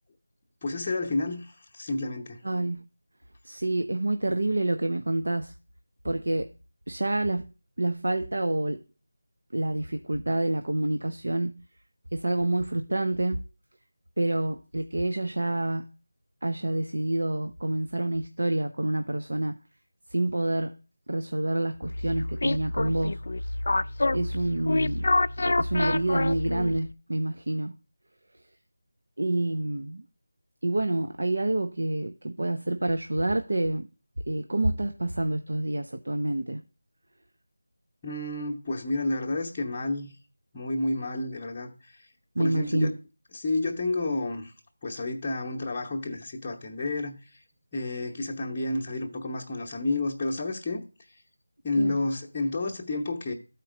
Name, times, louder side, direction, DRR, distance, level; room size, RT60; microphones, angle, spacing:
voice 1, 0.6-2.4 38.0-40.1 40.5-42.1 42.4-42.9 43.3-44.5 44.8-47.2 47.7-50.8 51.6-53.3, left 2 dB, 15° left, 0.8 m, -30 dB
voice 2, 2.4-2.8 3.4-5.5 6.0-6.5 6.9-7.5 7.8-8.8 9.5-11.6 12.1-13.4 14.2-15.9 16.4-19.6 20.1-20.8 21.1-23.2 24.1-25.1 25.4-27.7 29.2-30.0 30.6-33.9 34.3-36.6 42.4-42.9 51.8-52.0, right 1 dB, 80° right, 0.7 m, -28 dB
sound 1, 21.8-26.9, left 2 dB, 55° left, 0.3 m, -27 dB
12.5 x 4.4 x 5.0 m
figure-of-eight pair, 170°, 0 cm